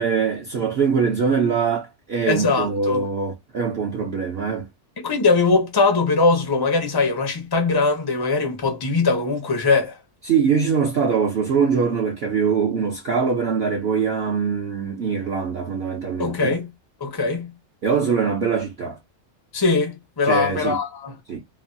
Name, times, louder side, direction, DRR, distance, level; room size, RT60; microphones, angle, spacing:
voice 1, 0.0-4.7 10.2-16.6 17.8-19.0 20.2-20.8 21.3-21.4, right 6 dB, 60° right, 0.6 m, -22 dB
voice 2, 2.3-3.1 5.0-10.0 16.2-16.7 17.0-17.5 19.5-21.2, left 3 dB, 40° left, 0.3 m, -21 dB
3.0 x 2.2 x 2.6 m
omnidirectional pair, 1.7 m